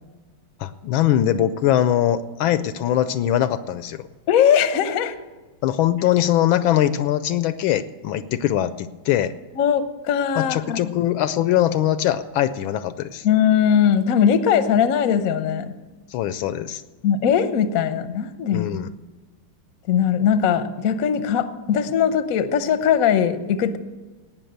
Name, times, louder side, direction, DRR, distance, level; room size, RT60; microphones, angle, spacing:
voice 1, 0.6-4.0 5.6-9.3 10.4-13.3 16.1-16.8 18.5-18.9, left 12 dB, 75° left, 13 dB, 1.3 m, -21 dB
voice 2, 4.3-5.1 9.6-10.8 13.2-15.7 17.0-18.7 19.9-23.8, left 8 dB, 60° left, 10 dB, 1.0 m, -20 dB
18.0 x 6.2 x 7.9 m, 1.3 s
omnidirectional pair, 2.3 m